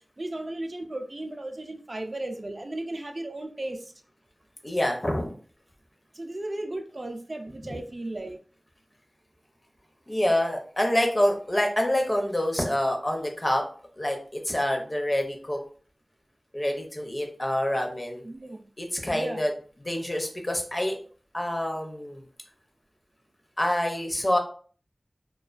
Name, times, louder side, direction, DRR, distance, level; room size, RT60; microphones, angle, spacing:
voice 1, 0.2-3.9 6.1-8.4 18.2-18.7 19.1-19.4, right 1 dB, 50° right, 4 dB, 0.3 m, -35 dB
voice 2, 4.6-5.3 10.1-13.6 14.0-15.6 16.5-18.2 18.8-19.5 19.8-21.0 21.3-22.2 23.6-24.4, left 1 dB, 35° left, 2 dB, 0.6 m, -26 dB
2.3 x 2.2 x 2.4 m, 0.43 s
wide cardioid pair, 55°, 0 cm